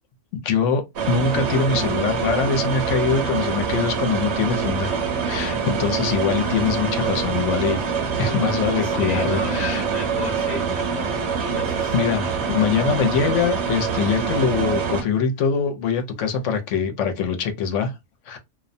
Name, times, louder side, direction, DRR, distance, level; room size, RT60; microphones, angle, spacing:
voice 1, 0.4-4.9 5.2-7.9 8.2-9.8 11.9-17.9 18.3-18.4, left 6 dB, 85° left, 0.9 m, -23 dB
sound 1, 1.0-15.0, right 6 dB, 65° right, 0.9 m, -25 dB
voice 2, 6.4-7.0 8.8-11.9, left 1 dB, 45° left, 1.1 m, -33 dB
2.4 x 2.1 x 2.5 m
omnidirectional pair, 1.3 m